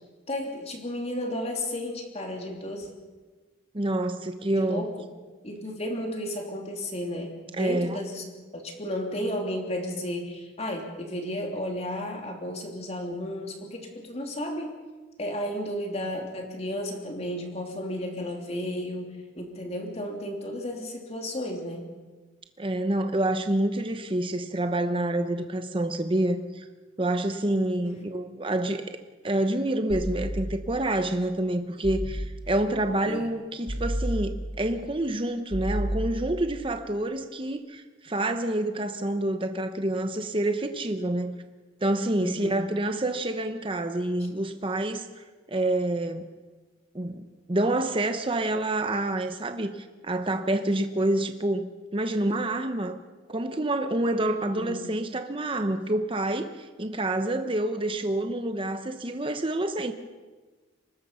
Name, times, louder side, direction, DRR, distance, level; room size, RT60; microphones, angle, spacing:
voice 1, 0.3-2.9 4.6-5.0 5.4-7.3 7.6-8.2 8.5-14.8 15.2-21.9 27.8-28.1 33.0-33.3 42.2-42.7 44.2-44.3 54.2-54.8, left 1 dB, 35° left, 2 dB, 3.2 m, -33 dB
voice 2, 3.7-4.9 7.6-8.0 22.6-26.6 27.0-29.0 29.2-41.3 41.8-45.2 45.5-46.2 46.9-53.0 53.3-59.9, right 1 dB, 25° right, 7 dB, 0.9 m, -27 dB
sound 1, 29.9-30.9 31.8-32.7 33.7-34.7 35.5-36.6, right 1 dB, 70° right, 7.7 m, -32 dB
24.5 x 20.0 x 5.7 m, 1.3 s
head